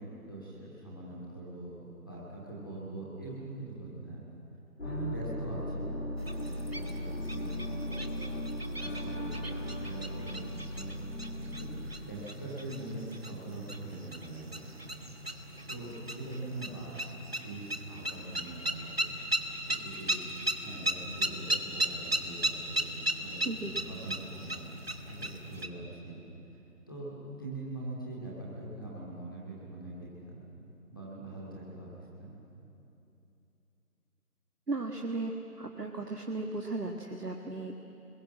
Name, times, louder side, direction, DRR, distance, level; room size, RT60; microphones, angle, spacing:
voice 1, 0.0-1.8 2.1-4.2 4.8-8.4 8.8-10.6 11.5-11.7 11.9-14.7 15.0-15.1 15.4-17.2 17.4-19.1 19.8-23.6 23.8-24.7 25.1-26.2 26.9-30.4 30.9-31.9 32.2-32.3, right 2 dB, 15° left, -6 dB, 2.3 m, -43 dB
sound 1, 4.8-11.9, left 1 dB, 45° left, 2.7 m, -37 dB
sound 2, 6.2-25.7, right 1 dB, 40° right, 1.2 m, -37 dB
voice 2, 34.7-37.7, right 3 dB, 75° right, 2 dB, 1.9 m, -36 dB
29.0 x 21.0 x 7.4 m, 2.9 s
figure-of-eight pair, 170°, 48 cm